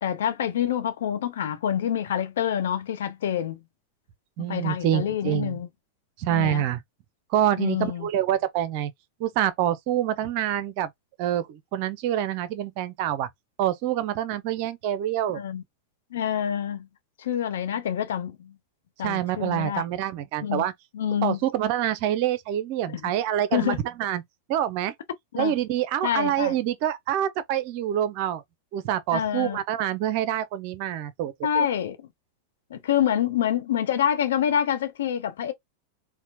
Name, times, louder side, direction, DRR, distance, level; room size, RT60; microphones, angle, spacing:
voice 1, 0.0-3.6 4.4-5.7 6.3-6.7 7.6-8.1 15.3-15.6 16.1-16.9 17.2-18.5 19.0-19.8 20.4-20.7 20.9-21.4 22.9-23.1 23.5-23.8 25.3-25.5 26.0-26.6 29.1-29.6 31.4-32.1 32.7-35.5, left 9 dB, 60° left, 0.7 m, -27 dB
voice 2, 4.4-5.6 6.2-6.8 7.3-8.9 9.2-10.9 11.2-13.3 13.6-15.4 19.0-20.7 21.2-24.2 24.5-24.9 25.4-28.4 28.7-31.7, right 11 dB, 45° right, 0.5 m, -26 dB
4.3 x 2.2 x 2.6 m
figure-of-eight pair, 90°, 0 cm